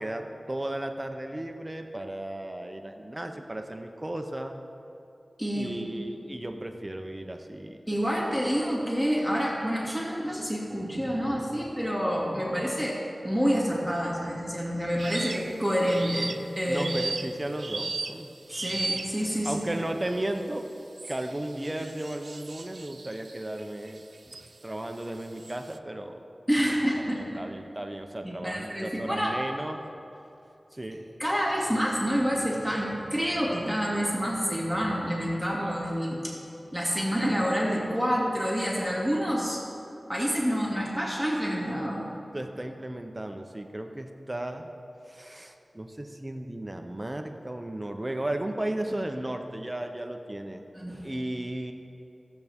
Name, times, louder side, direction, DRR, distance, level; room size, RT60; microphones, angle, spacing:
voice 1, 0.0-4.5 5.5-7.8 16.6-18.3 19.4-20.7 21.1-24.0 24.6-26.3 26.6-26.7 27.1-29.8 30.7-31.1 42.3-44.7 45.1-50.6 51.0-51.7, right 1 dB, 25° right, 5 dB, 0.7 m, -35 dB
voice 2, 5.4-5.8 7.9-13.0 13.2-16.9 18.5-19.8 26.5-27.4 28.2-29.3 31.2-36.3 36.7-39.6 40.1-42.1 50.7-51.1, equal, 5° left, -5 dB, 2.5 m, -28 dB
sound 1, 15.0-15.5 15.9-19.4 20.0-20.4 21.0-24.5 25.0-25.8, right 3 dB, 70° right, 0.3 m, -37 dB
16.5 x 8.1 x 3.6 m, 2.8 s
wide cardioid pair, 50°, 0 cm